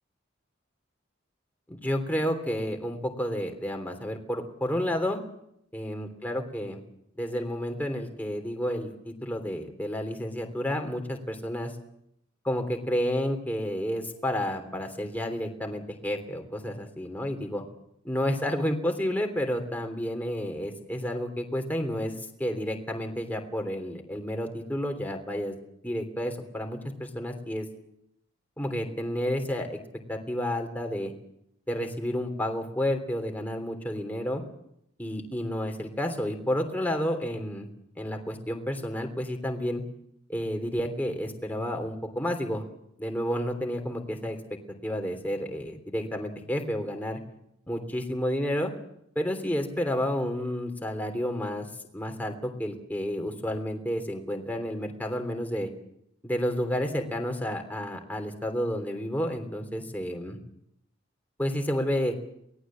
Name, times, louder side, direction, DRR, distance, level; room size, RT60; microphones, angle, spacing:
voice 1, 1.7-5.2 5.7-6.8 7.2-11.7 12.4-17.6 18.0-22.1 22.4-25.6 25.8-27.7 28.6-29.8 30.1-31.1 31.7-34.4 35.0-37.7 38.0-39.8 40.3-42.6 43.0-44.4 44.8-47.2 47.7-48.7 49.1-51.7 51.9-55.7 56.2-60.4 61.4-62.1, equal, 10° left, 4 dB, 3.2 m, -30 dB
23.5 x 18.5 x 7.6 m, 0.76 s
head